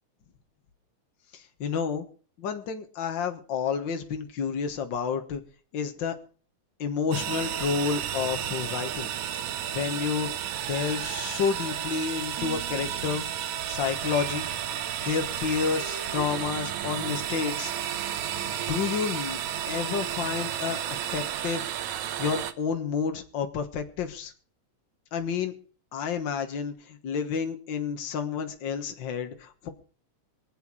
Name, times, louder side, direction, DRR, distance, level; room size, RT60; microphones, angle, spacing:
voice 1, 1.3-2.0 2.4-5.4 5.7-6.1 6.8-9.1 9.7-10.3 10.6-13.2 13.7-14.5 15.0-17.7 18.7-19.4 19.7-21.6 22.2-24.3 25.1-25.5 25.9-29.7, left 6 dB, 50° left, 6 dB, 1.7 m, -30 dB
sound 1, 7.1-22.5, right 10 dB, 80° right, 2.3 m, -32 dB
24.0 x 8.1 x 4.8 m, 0.41 s
omnidirectional pair, 3.3 m